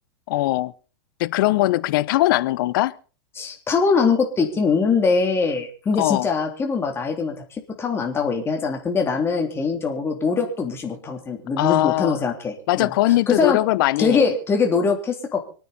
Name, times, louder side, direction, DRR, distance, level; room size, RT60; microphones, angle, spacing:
voice 1, 0.3-0.7 1.2-3.0 6.0-6.3 11.6-12.2 12.7-14.3, left 17 dB, 60° left, 0.8 m, -20 dB
voice 2, 3.4-7.3 7.8-12.9 13.3-13.6 14.0-15.4, left 5 dB, 20° left, 3.5 m, -22 dB
25.5 x 9.4 x 4.2 m
hypercardioid pair, 130°, 13 cm